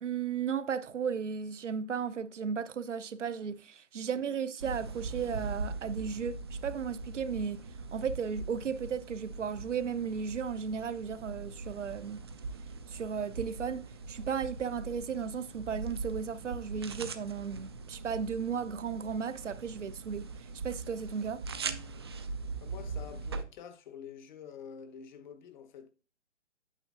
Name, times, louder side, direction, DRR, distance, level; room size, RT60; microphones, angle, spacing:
voice 1, 0.0-7.6 7.9-12.2 12.9-21.4, right 6 dB, 75° right, 0.8 m, -35 dB
sound 1, 4.6-23.4, right 4 dB, 25° right, 0.4 m, -41 dB
voice 2, 22.6-25.9, left 7 dB, 40° left, 1.1 m, -48 dB
9.0 x 7.2 x 2.5 m
figure-of-eight pair, 135°, 36 cm